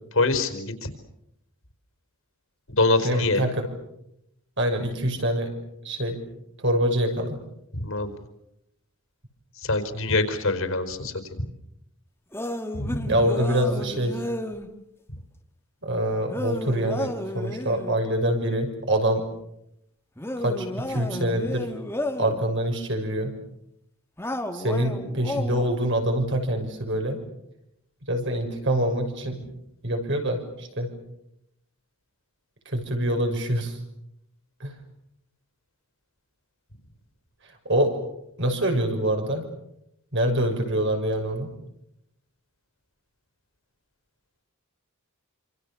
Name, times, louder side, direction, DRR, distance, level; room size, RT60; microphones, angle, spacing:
voice 1, 0.1-0.9 2.8-3.4 7.7-8.2 9.6-11.1 12.7-13.1, left 2 dB, 65° left, 8 dB, 4.7 m, -24 dB
voice 2, 3.0-3.7 4.6-5.5 5.8-6.2 6.6-7.4 13.1-14.2 15.8-19.2 20.4-21.7 22.2-23.3 24.5-27.2 28.0-29.4 29.8-30.9 32.6-33.8 34.6-34.7 37.4-37.9 38.4-39.4 40.1-41.5, right 1 dB, 55° right, 4 dB, 6.3 m, -25 dB
sound 1, 12.3-14.7 16.3-18.0 20.2-22.4 24.2-25.7, left 1 dB, 10° left, 1.9 m, -32 dB
27.5 x 27.0 x 7.0 m, 0.80 s
head